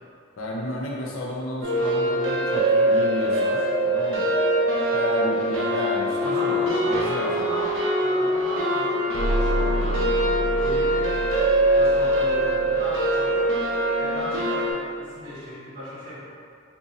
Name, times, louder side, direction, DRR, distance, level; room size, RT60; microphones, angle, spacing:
voice 1, 0.4-4.4 4.9-7.5, left 1 dB, 85° left, -3 dB, 0.6 m, -32 dB
sound 1, 1.6-14.7, right 1 dB, 70° right, 0.8 m, -23 dB
sound 2, 2.7-6.9, equal, 30° left, 0.5 m, -33 dB
voice 2, 6.2-7.7 8.0-10.2 10.6-11.3 11.7-13.5 14.0-16.2, equal, 35° right, -12 dB, 0.9 m, -35 dB
sound 3, 9.1-13.8, right 1 dB, 90° right, 0.3 m, -30 dB
2.7 x 2.6 x 3.9 m, 2.3 s
head